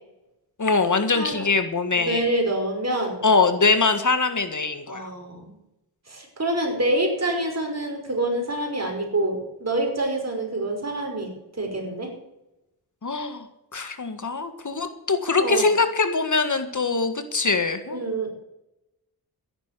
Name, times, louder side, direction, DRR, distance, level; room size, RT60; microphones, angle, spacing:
voice 1, 0.6-2.2 3.2-5.1 13.0-13.4 13.7-18.0, left 4 dB, 50° left, 9 dB, 1.8 m, -23 dB
voice 2, 1.1-1.5 2.0-3.2 4.9-5.6 6.1-12.1 15.4-15.7 17.9-18.3, right 1 dB, 40° right, 2 dB, 5.4 m, -26 dB
13.5 x 11.0 x 6.8 m, 0.91 s
cardioid pair, 70°, 39 cm